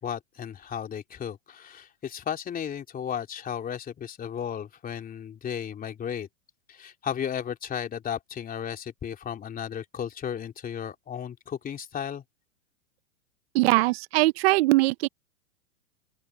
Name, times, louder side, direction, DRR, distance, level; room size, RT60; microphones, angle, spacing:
voice 1, 0.0-6.3 6.7-12.2, left 8 dB, 20° left, 3.2 m, -34 dB
voice 2, 13.5-15.1, right 21 dB, 50° right, 0.9 m, -21 dB
open air
hypercardioid pair, 115°, 40 cm